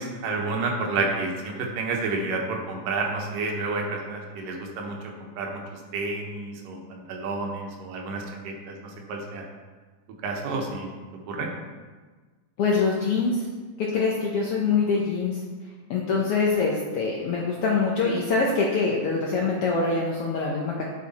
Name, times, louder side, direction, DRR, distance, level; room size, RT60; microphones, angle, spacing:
voice 1, 0.0-5.6 5.9-9.4 10.2-10.9 11.3-11.5, right 3 dB, 90° right, 1 dB, 2.8 m, -30 dB
voice 2, 12.6-13.4 13.8-15.4 15.9-20.8, left 4 dB, 75° left, -2 dB, 1.3 m, -24 dB
9.5 x 6.3 x 4.2 m, 1.4 s
omnidirectional pair, 3.7 m